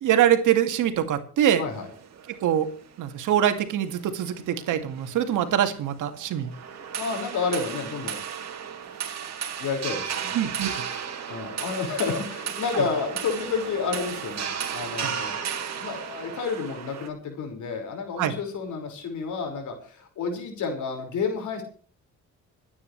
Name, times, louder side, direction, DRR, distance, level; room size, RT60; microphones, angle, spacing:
voice 1, 0.0-1.6 2.3-2.7 3.0-6.5 10.3-10.8 12.7-12.8 15.0-15.1 18.2-18.3, right 10 dB, 80° right, 7 dB, 2.2 m, -24 dB
sound 1, 1.7-17.1, right 8 dB, 60° right, 2.7 m, -35 dB
voice 2, 7.0-8.2 9.6-10.3 11.3-21.6, left 5 dB, 75° left, 3 dB, 5.5 m, -30 dB
27.5 x 9.8 x 3.3 m, 0.42 s
cardioid pair, 90°, 30 cm